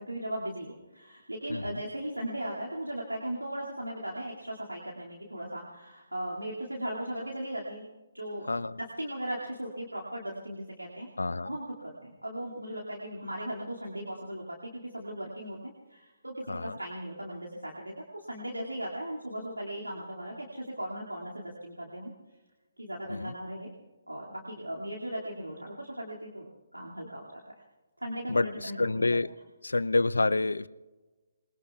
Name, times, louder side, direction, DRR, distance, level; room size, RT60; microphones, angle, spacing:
voice 1, 0.0-7.9 8.1-8.5 8.7-11.1 11.4-15.6 15.9-22.1 22.8-23.7 24.1-27.6 28.0-29.2, right 1 dB, 85° right, -3 dB, 2.4 m, -38 dB
voice 2, 8.5-8.8 11.2-11.5 16.5-16.8 23.1-23.3 28.3-29.3 29.6-30.7, left 3 dB, 75° left, 17 dB, 0.5 m, -28 dB
27.0 x 21.0 x 2.4 m, 1.2 s
figure-of-eight pair, 135°, 0 cm